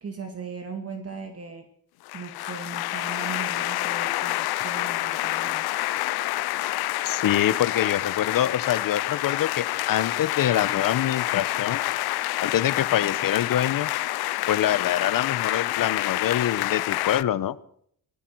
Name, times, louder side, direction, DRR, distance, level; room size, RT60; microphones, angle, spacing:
voice 1, 0.0-1.7 2.1-5.7, right 5 dB, 40° right, 5 dB, 2.2 m, -38 dB
sound 1, 2.0-17.2, left 17 dB, 80° left, 0.6 m, -28 dB
voice 2, 7.0-11.8 12.4-13.9 14.5-17.6, left 11 dB, 60° left, 17 dB, 1.0 m, -25 dB
18.5 x 15.5 x 4.7 m, 0.64 s
cardioid pair, 100°, 37 cm